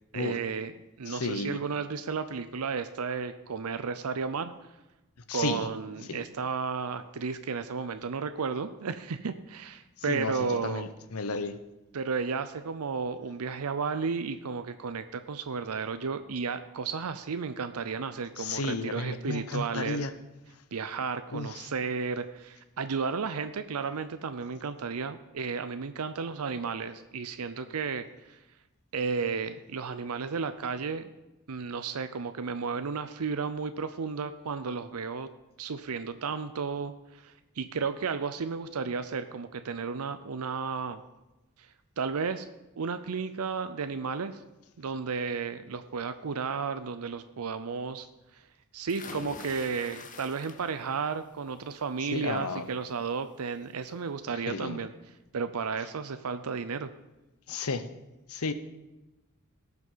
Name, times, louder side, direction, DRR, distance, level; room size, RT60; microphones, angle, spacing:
voice 1, 0.1-0.7 1.0-4.5 5.3-10.9 11.9-20.0 20.7-28.4 28.9-31.1 31.5-35.3 35.6-41.0 42.0-42.5 42.8-44.4 44.8-48.1 48.3-48.4 48.7-54.9 55.3-56.9, right 5 dB, 90° right, 10 dB, 0.6 m, -33 dB
voice 2, 1.1-1.6 5.3-5.7 6.1-6.2 10.1-11.6 18.4-20.1 21.3-21.7 52.1-52.7 54.5-54.8 57.5-57.9 58.3-58.5, left 3 dB, 85° left, 11 dB, 0.9 m, -33 dB
sound 1, 48.9-51.0 51.4-51.8 53.2-53.3 53.7-53.8, left 3 dB, 35° left, 1.0 m, -45 dB
18.0 x 6.0 x 5.6 m, 1.0 s
head